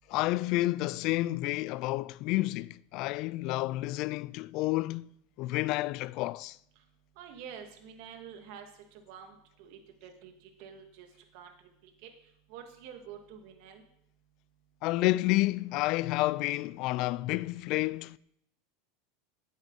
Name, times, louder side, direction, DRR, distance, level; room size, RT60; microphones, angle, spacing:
voice 1, 0.1-5.1 5.4-6.6 14.8-18.2, left 18 dB, 55° left, 0.3 m, -30 dB
voice 2, 7.2-8.7 8.9-10.3 10.6-11.1 11.3-11.5 12.0-12.1 12.5-13.8, right 8 dB, 65° right, 2.0 m, -47 dB
12.5 x 8.1 x 4.1 m
supercardioid pair, 115°, 0 cm